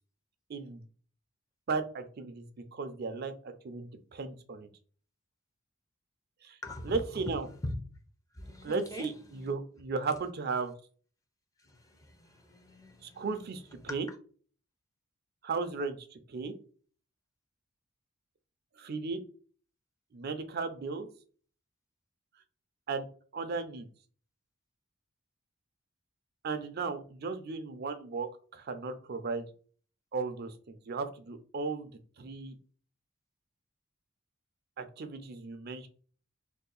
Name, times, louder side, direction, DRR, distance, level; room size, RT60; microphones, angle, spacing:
voice 1, 0.5-0.9 1.7-2.4 2.7-4.7 6.4-6.6 6.8-7.5 8.6-10.7 13.0-14.1 15.4-16.5 18.8-19.3 20.1-21.1 22.9-23.1 23.3-23.9 26.4-29.5 30.1-31.9 32.2-32.6 34.8-35.9, right 4 dB, 50° right, 0.5 m, -35 dB
voice 2, 6.6-7.0 7.6-7.8 8.3-9.1 9.3-9.5 11.6-13.5 13.9-14.2, left 1 dB, 15° left, 0.5 m, -42 dB
2.7 x 2.3 x 3.8 m
head